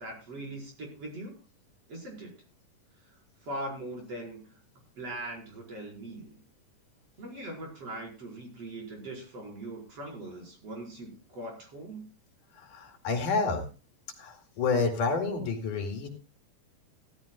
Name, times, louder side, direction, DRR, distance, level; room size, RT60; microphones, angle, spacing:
voice 1, 0.0-1.3 1.9-2.3 3.4-4.6 5.0-6.4 7.2-12.0, right 1 dB, 45° right, -1 dB, 6.3 m, -41 dB
voice 2, 12.5-13.7 14.2-16.1, left 4 dB, 70° left, 3 dB, 3.7 m, -29 dB
16.0 x 14.5 x 2.4 m, 0.34 s
omnidirectional pair, 3.9 m